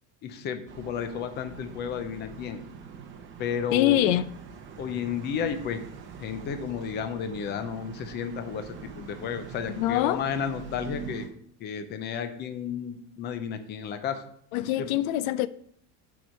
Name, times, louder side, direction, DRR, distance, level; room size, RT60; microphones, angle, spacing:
voice 1, 0.2-2.6 3.4-4.0 4.8-5.8 6.2-11.3 11.6-14.2 14.8-14.9, left 7 dB, 25° left, 0.6 m, -32 dB
sound 1, 0.7-11.3, right 6 dB, 30° right, 0.8 m, -44 dB
voice 2, 3.7-4.3 9.8-10.2 14.5-15.5, left 13 dB, 75° left, 0.5 m, -24 dB
7.7 x 4.8 x 5.3 m
cardioid pair, 175°, 40 cm